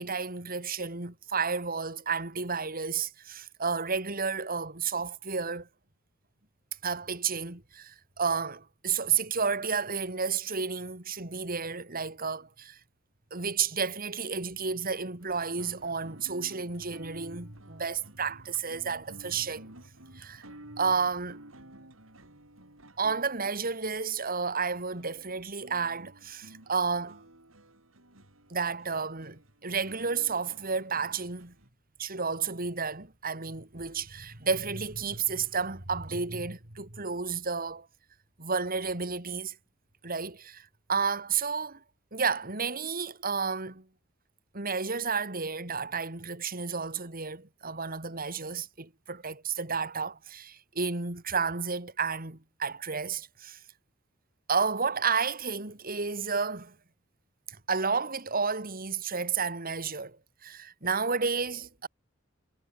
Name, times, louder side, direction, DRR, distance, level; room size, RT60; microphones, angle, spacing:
voice 1, 0.0-5.7 6.8-12.8 13.3-19.7 20.1-20.5 20.7-21.4 23.0-27.2 28.5-31.5 32.0-37.9 38.4-39.6 40.0-41.8 42.1-43.9 44.5-53.6 54.5-56.8 57.5-60.2 60.4-61.9, right 5 dB, 45° right, 3.7 m, -31 dB
sound 1, 15.2-31.7, right 1 dB, 80° right, 6.7 m, -53 dB
head